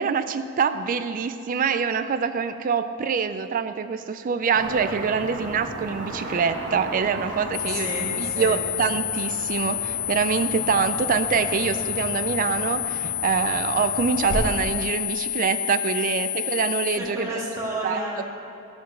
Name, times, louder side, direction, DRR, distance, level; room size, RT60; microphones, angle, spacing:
voice 1, 0.0-17.3 17.8-18.0, right 6 dB, 40° right, 11 dB, 0.3 m, -25 dB
Car passing by / Traffic noise roadway noise, 4.5-14.4, right 1 dB, 55° right, 1.5 m, -36 dB
sound 1, 7.5-17.0, left 13 dB, 80° left, 0.5 m, -29 dB
voice 2, 7.6-8.6 17.0-18.2, right 1 dB, 15° right, -6 dB, 2.0 m, -31 dB
12.5 x 4.4 x 6.5 m, 2.8 s
head